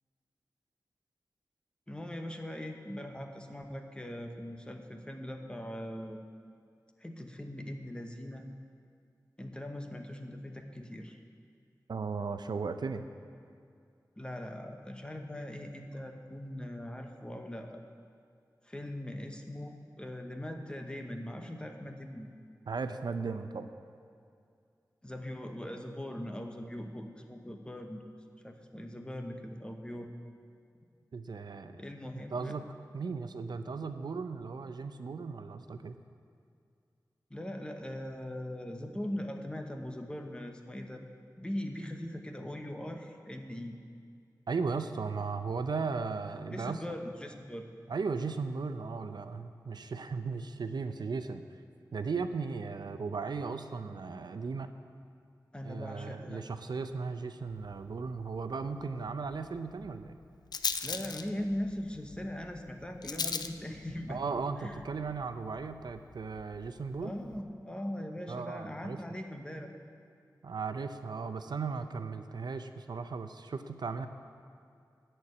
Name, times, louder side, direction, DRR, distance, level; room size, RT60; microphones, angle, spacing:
voice 1, 1.9-6.2 7.0-8.5 9.4-11.2 14.2-17.8 18.6-22.3 25.0-28.0 28.4-30.1 31.8-32.6 37.3-41.0 41.4-43.8 46.5-47.7 55.5-56.4 60.8-64.2 64.6-64.8 67.0-69.7, left 1 dB, 15° left, 4 dB, 0.9 m, -40 dB
voice 2, 11.9-13.0 22.7-23.7 31.1-31.8 32.3-32.6 32.9-36.0 44.5-46.8 47.9-51.4 51.9-54.7 55.6-60.2 64.1-67.1 68.3-69.0 70.4-74.1, right 4 dB, 80° right, 9 dB, 0.5 m, -36 dB
Rattle, 57.5-67.4, left 5 dB, 70° left, 0.4 m, -42 dB
13.0 x 4.5 x 8.4 m, 2.3 s
wide cardioid pair, 75°, 7 cm